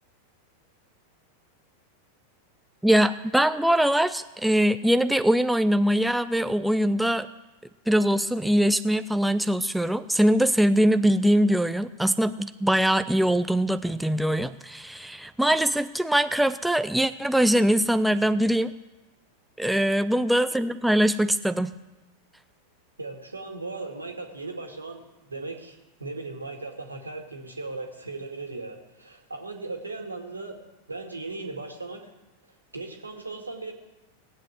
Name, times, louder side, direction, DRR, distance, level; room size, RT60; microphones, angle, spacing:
voice 1, 2.8-7.3 7.9-18.7 19.6-21.7, equal, ahead, 10 dB, 0.5 m, -22 dB
voice 2, 23.0-30.6 30.9-32.0 32.7-33.7, right 3 dB, 80° right, 3 dB, 2.2 m, -37 dB
18.0 x 8.4 x 7.8 m, 1.1 s
figure-of-eight pair, 90°, 0 cm